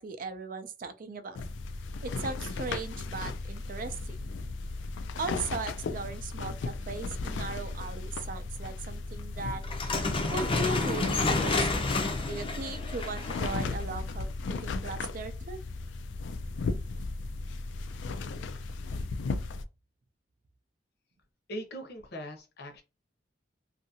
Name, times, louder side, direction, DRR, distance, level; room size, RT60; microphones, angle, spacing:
voice 1, 0.0-1.4 2.0-4.2 5.2-9.6 10.3-11.8 12.2-15.6, right 3 dB, 50° right, 0.4 m, -38 dB
sound 1, 1.3-19.6, left 3 dB, 85° left, 0.3 m, -36 dB
sound 2, 9.6-13.8, left 3 dB, 30° left, 0.5 m, -30 dB
voice 2, 21.5-22.8, equal, 60° left, 0.8 m, -40 dB
2.7 x 2.5 x 2.7 m
head